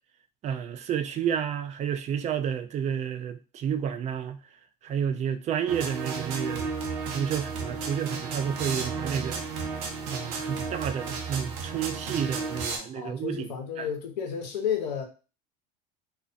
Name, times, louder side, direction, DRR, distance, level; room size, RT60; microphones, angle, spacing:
voice 1, 0.4-4.4 4.8-6.7 7.1-9.4 10.1-13.9, right 8 dB, 35° right, 0.4 m, -30 dB
sound 1, 5.7-12.8, right 4 dB, 70° right, 0.7 m, -33 dB
voice 2, 12.7-15.1, left 8 dB, 90° left, 0.5 m, -32 dB
2.5 x 2.1 x 2.5 m
hypercardioid pair, 90°, 21 cm